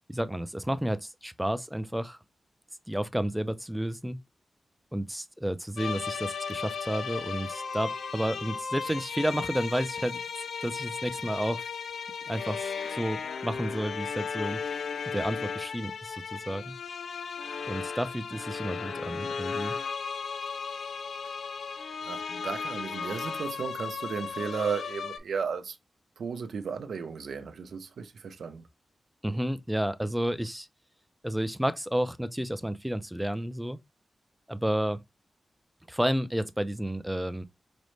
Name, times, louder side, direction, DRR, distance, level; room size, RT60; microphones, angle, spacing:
voice 1, 0.1-2.2 2.9-4.2 4.9-10.2 10.6-11.7 12.3-16.8 17.7-19.8 29.2-30.7 31.2-33.8 34.5-35.0 35.9-37.4, equal, 5° right, 0.3 m, -31 dB
sound 1, 5.8-25.2, left 6 dB, 85° left, 0.3 m, -35 dB
voice 2, 22.0-25.8 26.2-28.6, right 6 dB, 90° right, 0.6 m, -34 dB
5.1 x 2.1 x 3.1 m
wide cardioid pair, 140°, 0 cm